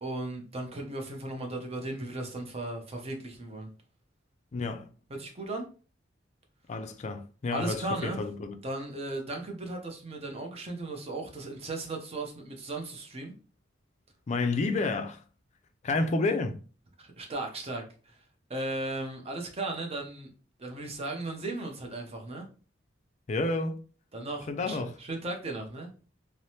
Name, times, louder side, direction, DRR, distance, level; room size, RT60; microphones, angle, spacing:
voice 1, 0.0-3.7 5.2-5.7 7.5-8.2 8.6-13.3 17.0-18.2 18.5-20.3 20.6-22.5 24.1-25.9, right 2 dB, 30° right, 0.6 m, -36 dB
voice 2, 4.5-4.9 6.7-8.6 14.3-15.2 15.8-16.6 23.3-23.8 24.5-24.9, left 3 dB, 40° left, 0.4 m, -30 dB
3.2 x 2.0 x 2.7 m
head